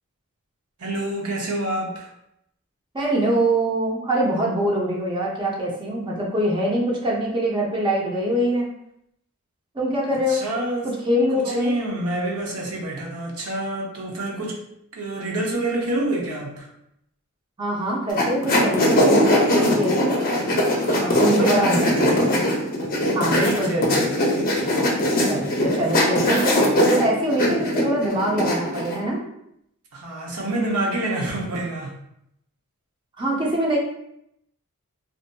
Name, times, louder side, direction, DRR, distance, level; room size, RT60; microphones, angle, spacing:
voice 1, 0.8-2.1 10.3-10.9 11.5-14.6 14.9-16.7 20.9-22.3 23.4-24.0 29.9-32.0, right 1 dB, 80° right, -1 dB, 0.7 m, -27 dB
voice 2, 2.9-8.7 9.7-10.4 10.8-11.8 17.6-20.2 21.2-22.5 23.1-24.1 25.2-29.2 33.2-33.8, right 1 dB, 20° right, -2 dB, 0.5 m, -24 dB
sound 1, 18.1-29.0, left 1 dB, 40° left, 0.5 m, -20 dB
2.5 x 2.5 x 2.2 m, 0.77 s
head